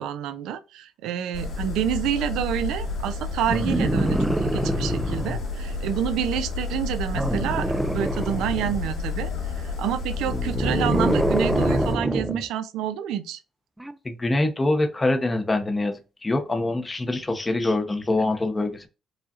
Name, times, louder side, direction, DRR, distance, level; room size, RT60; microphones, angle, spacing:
voice 1, 0.0-9.3 9.6-13.4, right 10 dB, 90° right, 0.4 m, -28 dB
sound 1, 1.3-11.9, left 4 dB, 75° left, 2.1 m, -30 dB
sound 2, 3.5-5.5 7.1-8.9 10.2-12.5 13.8-13.9, right 1 dB, 10° right, 0.4 m, -25 dB
voice 2, 14.0-18.9, left 2 dB, 20° left, 0.7 m, -24 dB
4.9 x 2.4 x 2.7 m
cardioid pair, 90°, 0 cm